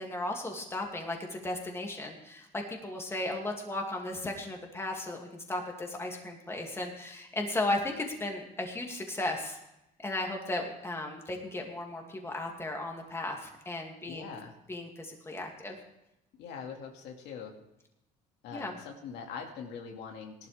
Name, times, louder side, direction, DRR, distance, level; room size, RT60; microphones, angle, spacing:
voice 1, 0.0-9.6 10.0-14.3 14.7-15.8 18.5-18.8, left 2 dB, 15° left, 1 dB, 2.6 m, -35 dB
voice 2, 14.0-14.5 16.4-17.5 18.4-20.5, left 6 dB, 85° left, 1 dB, 2.3 m, -43 dB
18.0 x 12.0 x 3.5 m, 0.88 s
cardioid pair, 110°, 17 cm